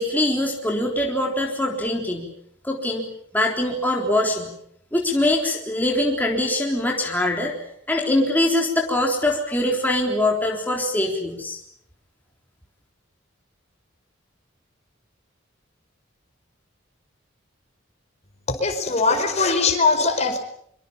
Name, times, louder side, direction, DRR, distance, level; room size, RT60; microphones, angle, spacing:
voice 1, 0.0-2.3 2.6-3.1 3.3-4.5 4.9-7.5 7.9-11.6, left 1 dB, 10° left, -1 dB, 3.8 m, -23 dB
voice 2, 18.5-20.4, left 4 dB, 35° left, 5 dB, 4.9 m, -21 dB
25.0 x 25.0 x 7.4 m, 0.70 s
head